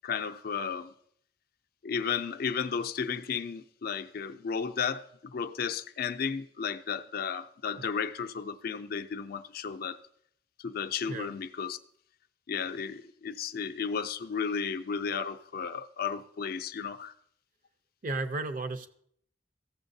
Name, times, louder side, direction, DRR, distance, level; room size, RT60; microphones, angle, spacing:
voice 1, 0.0-0.9 1.8-10.0 10.6-11.8 12.5-17.1, left 6 dB, 55° left, 0.4 m, -33 dB
voice 2, 18.0-18.9, right 3 dB, 50° right, 0.6 m, -34 dB
14.5 x 7.1 x 2.7 m
head